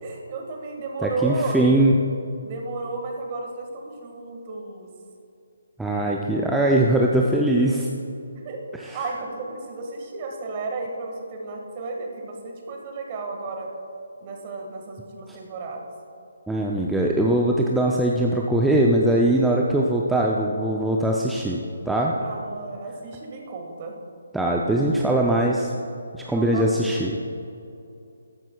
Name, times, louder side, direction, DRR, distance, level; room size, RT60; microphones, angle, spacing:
voice 1, 0.0-1.8 2.4-4.9 8.4-8.6 8.9-13.7 14.2-15.9 22.2-24.0 26.3-26.8, right 3 dB, 35° right, 1 dB, 1.6 m, -33 dB
voice 2, 1.0-1.9 5.8-7.9 8.8-9.0 16.5-22.1 24.3-25.7 26.1-27.2, right 1 dB, 5° right, -2 dB, 0.5 m, -21 dB
14.0 x 10.5 x 2.3 m, 2.7 s
figure-of-eight pair, 145°, 0 cm